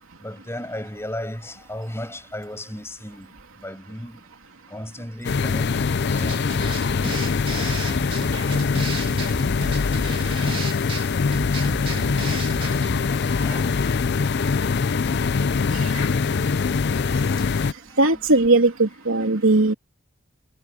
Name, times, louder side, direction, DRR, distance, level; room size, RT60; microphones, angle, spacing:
voice 1, 0.2-4.3 4.7-6.5 7.5-7.7 12.7-13.8 17.8-18.2, left 1 dB, 10° left, 7.2 m, -37 dB
sound 1, 5.2-17.7, left 5 dB, 50° left, 0.4 m, -23 dB
sound 2, 6.2-13.0, right 2 dB, 25° right, 2.4 m, -33 dB
voice 2, 18.0-19.7, right 2 dB, 75° right, 3.1 m, -19 dB
head